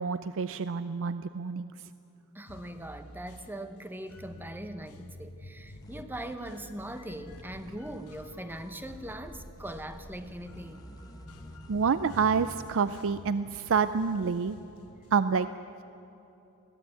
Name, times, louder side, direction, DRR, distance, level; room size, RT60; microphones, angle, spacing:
voice 1, 0.0-1.7 11.7-14.6 15.1-15.5, right 5 dB, 60° right, 13 dB, 0.5 m, -28 dB
voice 2, 2.3-10.8, right 1 dB, 10° right, 9 dB, 0.9 m, -41 dB
sound 1, 2.5-15.2, left 1 dB, 80° left, 1.3 m, -50 dB
sound 2, 5.8-12.6, equal, 15° left, 1.3 m, -50 dB
21.5 x 17.0 x 8.7 m, 2.9 s
head